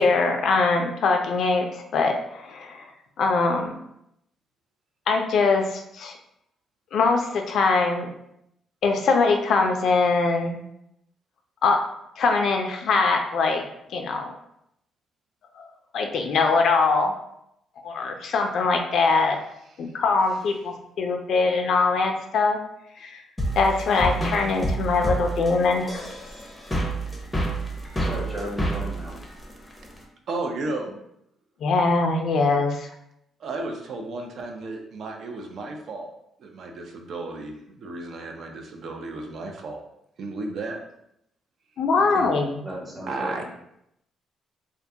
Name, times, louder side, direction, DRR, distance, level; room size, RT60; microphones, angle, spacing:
voice 1, 0.0-2.8 3.2-3.8 5.1-6.1 6.9-8.1 8.8-10.6 11.6-11.8 12.2-13.6 13.9-14.3 15.6-15.7 15.9-17.1 17.8-19.4 19.8-22.6 23.0-23.2 23.6-26.0 31.6-32.9 41.8-42.6, left 4 dB, 70° left, 3 dB, 0.3 m, -22 dB
sound 1, 23.4-30.0, right 1 dB, 15° left, 0.5 m, -29 dB
voice 2, 28.0-29.2 42.6-43.4, equal, 25° right, -4 dB, 1.1 m, -34 dB
voice 3, 30.3-30.9 33.4-36.1 36.4-39.8 40.2-40.8 42.0-42.3 43.1-43.4, right 2 dB, 65° right, 3 dB, 0.4 m, -33 dB
2.4 x 2.2 x 2.7 m, 0.78 s
cardioid pair, 90°, 0 cm